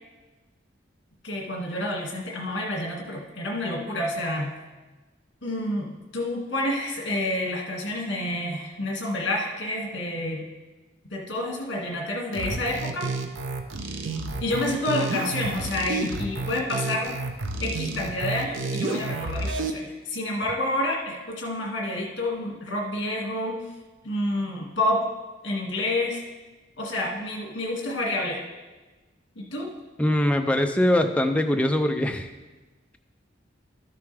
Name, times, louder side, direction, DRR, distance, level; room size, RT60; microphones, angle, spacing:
voice 1, 1.2-4.5 5.4-10.5 11.1-13.1 14.4-17.2 17.6-23.6 24.0-25.1 25.4-26.2 26.8-28.4 29.4-29.7, left 1 dB, 65° left, -1 dB, 1.8 m, -29 dB
sound 1, 12.3-19.7, right 3 dB, 85° right, 0.8 m, -30 dB
voice 2, 30.0-32.3, left 1 dB, 5° left, 5 dB, 0.5 m, -22 dB
12.5 x 6.8 x 3.4 m, 1.2 s
head